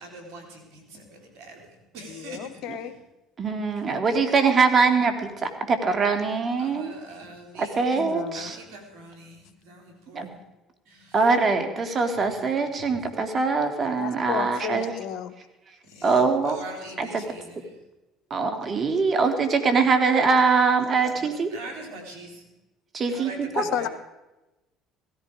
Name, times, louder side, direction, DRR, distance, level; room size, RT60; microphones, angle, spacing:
voice 1, 0.0-1.6 1.9-2.5 6.6-7.8 8.3-9.4 9.7-10.3 16.0-16.1 16.5-17.4 21.5-22.3 23.1-23.9, right 2 dB, 75° right, 4.0 m, -42 dB
voice 2, 2.1-2.9 7.9-8.5 14.0-15.3 17.2-17.3 23.5-23.9, left 9 dB, 70° left, 1.3 m, -32 dB
voice 3, 3.4-6.9 7.6-8.6 10.1-10.3 11.1-14.9 16.0-16.6 17.0-17.2 18.3-21.5 22.9-23.6, right 4 dB, 40° right, 2.6 m, -23 dB
16.5 x 15.0 x 4.9 m
hypercardioid pair, 70°, 0 cm